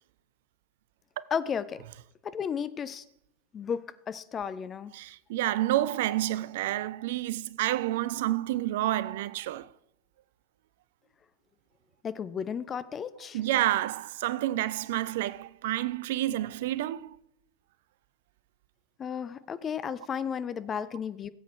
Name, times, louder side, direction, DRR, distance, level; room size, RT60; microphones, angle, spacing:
voice 1, 1.3-1.8 2.2-3.0 3.5-4.9 12.0-13.4 19.0-21.3, left 7 dB, 25° left, 0.6 m, -33 dB
voice 2, 4.9-9.7 13.3-17.2, right 14 dB, 55° right, 0.4 m, -29 dB
17.5 x 8.1 x 3.2 m
figure-of-eight pair, 90°, 0 cm